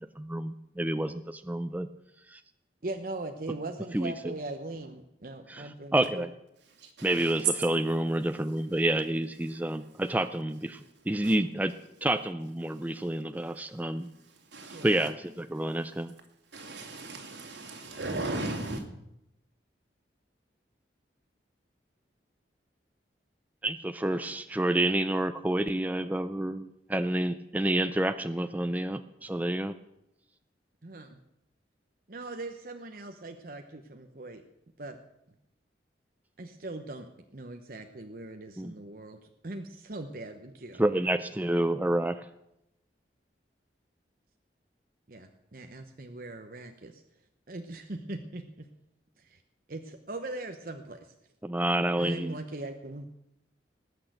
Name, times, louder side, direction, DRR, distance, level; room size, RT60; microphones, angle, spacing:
voice 1, 0.2-1.9 2.3-2.4 3.9-4.3 5.5-6.3 7.0-11.7 12.0-14.1 14.8-16.1 23.6-29.7 38.6-38.7 40.8-42.3 51.4-52.4, right 1 dB, 10° right, 10 dB, 0.4 m, -29 dB
voice 2, 2.8-6.3 14.7-14.9 30.8-31.2 32.1-34.4 34.8-35.0 36.4-39.2 39.4-40.8 45.1-47.0 47.5-48.7 49.2-49.4 49.7-51.1 52.0-53.1, right 2 dB, 50° right, 5 dB, 0.9 m, -40 dB
voice 3, 6.7-7.3 9.5-9.6 10.7-10.9 11.2-11.4 12.7-13.1 13.5-15.1 15.8-15.9 16.5-18.8, right 2 dB, 85° right, 3 dB, 2.6 m, -39 dB
19.5 x 6.5 x 8.0 m, 0.84 s
head